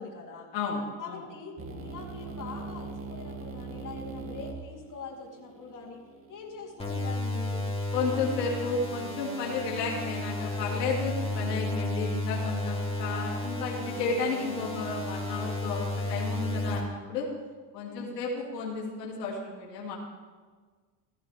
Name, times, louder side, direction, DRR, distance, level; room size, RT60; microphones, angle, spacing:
voice 1, 0.0-0.5 1.0-6.0 6.3-7.6 17.9-18.2, left 4 dB, 40° left, -1 dB, 3.4 m, -43 dB
voice 2, 0.5-1.2 7.9-17.3 17.7-20.0, left 4 dB, 90° left, -2 dB, 2.8 m, -32 dB
sound 1, 1.6-7.5, right 3 dB, 25° right, 2.3 m, -42 dB
sound 2, 6.8-16.8, left 2 dB, 10° left, 3.3 m, -32 dB
17.0 x 13.5 x 3.5 m, 1.5 s
hypercardioid pair, 85°, 47 cm